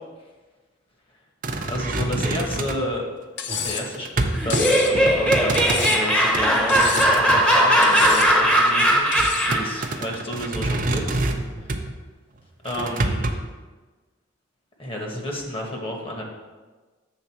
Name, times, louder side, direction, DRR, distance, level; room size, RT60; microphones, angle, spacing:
sound 1, 1.4-2.9 3.5-4.7 4.9-5.9 6.3-7.4 7.8-8.5 9.2-11.9 12.7-13.3, right 2 dB, 45° right, 0.6 m, -27 dB
voice 1, 1.6-3.0 3.6-9.1 9.5-11.2 11.6-11.7 12.6-13.3 14.8-16.2, left 1 dB, 30° left, 0 dB, 1.3 m, -31 dB
Cutlery silverware, 3.4-3.9 4.5-4.9 5.5-6.2 6.7-7.2 7.8-8.3 9.1-9.5, left 8 dB, 65° left, 0.6 m, -30 dB
Laughter, 4.3-9.8, equal, 5° left, 1.0 m, -19 dB
8.0 x 3.8 x 5.9 m, 1.3 s
head